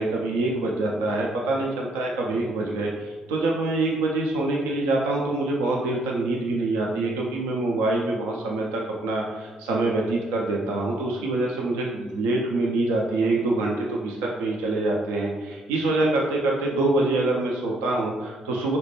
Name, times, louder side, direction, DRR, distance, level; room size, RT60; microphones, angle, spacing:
voice 1, 0.0-18.8, right 2 dB, 80° right, -2 dB, 0.3 m, -25 dB
4.0 x 2.1 x 2.9 m, 1.3 s
hypercardioid pair, 40°, 3 cm